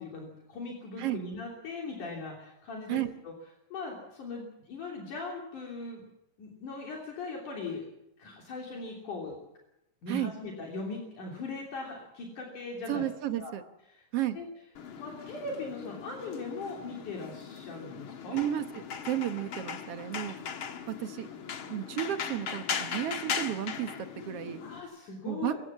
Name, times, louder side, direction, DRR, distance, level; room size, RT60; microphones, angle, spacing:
voice 1, 0.0-3.3 3.7-6.0 6.4-7.8 8.2-9.4 10.0-13.1 13.4-13.5 13.9-14.0 14.3-14.5 15.0-18.4 24.6-25.6, left 3 dB, 65° left, 0 dB, 4.7 m, -39 dB
voice 2, 12.9-13.6 14.1-14.4 18.3-20.4 20.9-21.3 21.7-23.9 24.2-24.6 25.2-25.5, right 11 dB, 60° right, 9 dB, 1.8 m, -32 dB
sound 1, 14.7-24.8, left 6 dB, 50° left, 1.8 m, -39 dB
26.5 x 15.5 x 7.4 m, 0.84 s
omnidirectional pair, 3.8 m